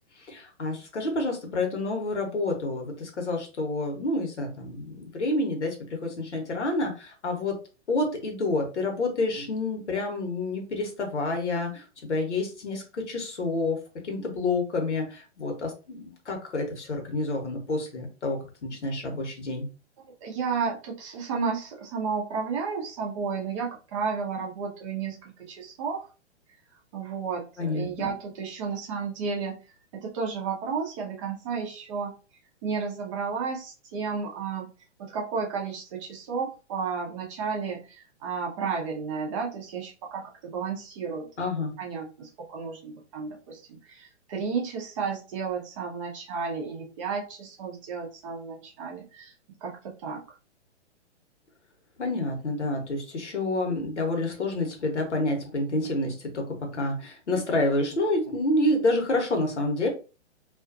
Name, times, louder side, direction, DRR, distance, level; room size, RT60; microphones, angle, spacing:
voice 1, 0.3-7.5 7.9-19.7 27.6-28.1 41.4-41.7 52.0-56.4 56.7-59.9, left 2 dB, 75° left, 3 dB, 1.1 m, -28 dB
voice 2, 20.2-26.0 26.9-29.6 29.9-32.1 32.6-34.7 35.0-41.3 41.6-49.3 49.6-50.2, right 5 dB, 30° right, 0 dB, 0.6 m, -32 dB
2.4 x 2.3 x 2.4 m, 0.33 s
figure-of-eight pair, 120°, 35 cm